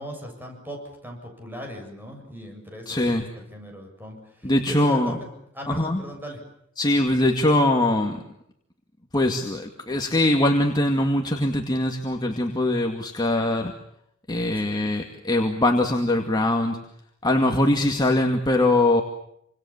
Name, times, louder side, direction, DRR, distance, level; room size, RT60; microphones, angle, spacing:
voice 1, 0.0-5.3 5.5-6.4 14.6-14.9, equal, 10° right, 2 dB, 7.5 m, -38 dB
voice 2, 2.9-3.2 4.4-5.2 5.7-6.0 6.8-8.2 9.1-13.7 14.3-16.8 17.2-19.0, left 1 dB, 20° left, 2 dB, 2.3 m, -22 dB
29.0 x 26.5 x 7.3 m, 0.74 s
head